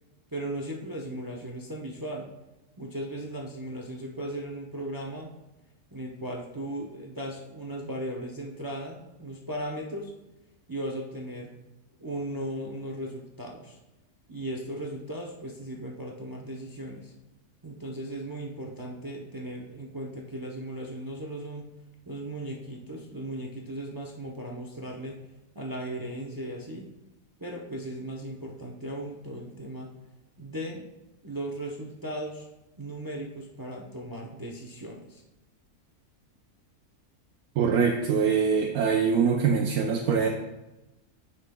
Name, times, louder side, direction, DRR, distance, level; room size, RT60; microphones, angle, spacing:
voice 1, 0.3-2.3 2.8-5.3 5.9-10.1 10.7-11.5 12.0-13.8 14.3-17.1 17.6-21.7 22.1-25.2 25.5-26.9 27.4-29.9 30.4-30.9 31.2-32.5 32.8-35.2, right 1 dB, 30° right, 0 dB, 0.4 m, -37 dB
voice 2, 37.6-40.3, right 6 dB, 85° right, 1 dB, 1.1 m, -23 dB
9.8 x 5.6 x 2.2 m, 0.98 s
omnidirectional pair, 1.6 m